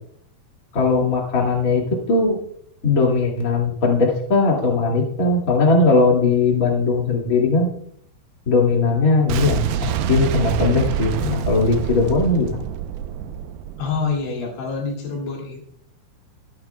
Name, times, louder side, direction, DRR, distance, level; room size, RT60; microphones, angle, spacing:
voice 1, 0.7-1.8 2.1-2.4 2.8-7.7 8.5-12.6, left 3 dB, 55° left, -1 dB, 0.9 m, -19 dB
Boom, 9.3-14.2, right 8 dB, 85° right, 2.3 m, -26 dB
voice 2, 13.8-15.8, left 4 dB, 70° left, -1 dB, 4.7 m, -27 dB
24.5 x 10.5 x 2.2 m, 0.67 s
omnidirectional pair, 5.6 m